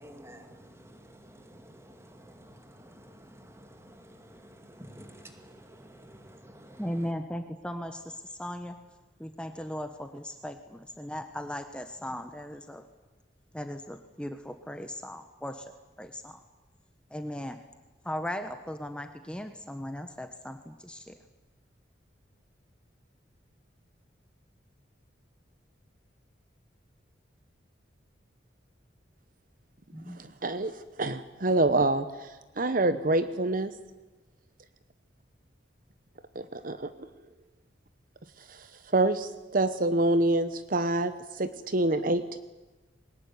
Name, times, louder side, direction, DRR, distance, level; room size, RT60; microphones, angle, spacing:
voice 1, 0.0-6.8, equal, 15° right, 6 dB, 2.5 m, -51 dB
voice 2, 6.8-8.7 9.2-12.8 13.5-15.6 16.0-16.4 17.1-17.6 18.0-21.1 29.9-30.2, equal, 5° left, 7 dB, 1.2 m, -37 dB
voice 3, 30.1-33.7 36.3-37.1 38.5-38.7 38.9-42.4, right 2 dB, 45° right, 12 dB, 1.0 m, -27 dB
22.0 x 19.5 x 9.7 m, 1.2 s
head